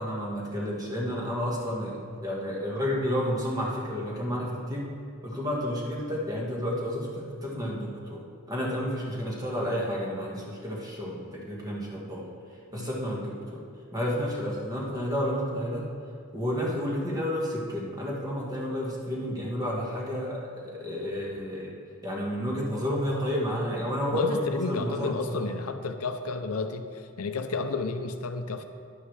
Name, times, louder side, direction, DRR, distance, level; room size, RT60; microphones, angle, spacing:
voice 1, 0.0-4.9 5.2-12.3 12.7-13.6 13.9-15.9 16.3-21.7 22.0-25.5, equal, 15° right, -4 dB, 1.6 m, -31 dB
voice 2, 24.1-28.7, left 3 dB, 80° left, 7 dB, 0.6 m, -32 dB
11.0 x 10.5 x 3.3 m, 2.2 s
head